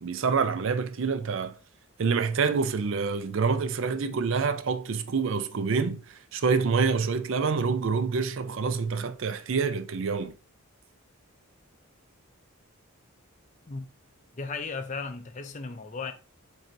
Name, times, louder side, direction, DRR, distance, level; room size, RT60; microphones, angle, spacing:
voice 1, 0.0-1.5 2.0-10.3, right 5 dB, 60° right, 0.4 m, -27 dB
voice 2, 14.4-16.1, left 4 dB, 35° left, 0.4 m, -35 dB
7.3 x 2.7 x 2.6 m
head